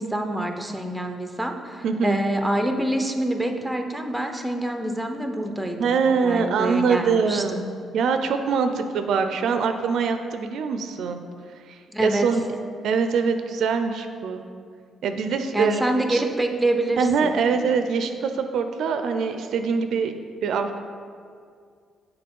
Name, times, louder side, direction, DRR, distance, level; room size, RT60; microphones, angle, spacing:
voice 1, 0.0-7.6 11.9-12.3 15.5-17.3, right 1 dB, 5° right, 5 dB, 0.6 m, -26 dB
voice 2, 1.8-2.2 5.8-7.6 7.9-11.2 11.7-12.4 12.8-14.4 15.0-16.2 17.0-20.1 20.4-20.8, right 5 dB, 75° right, 8 dB, 0.4 m, -23 dB
6.7 x 4.0 x 5.3 m, 2.2 s
cardioid pair, 90°, 0 cm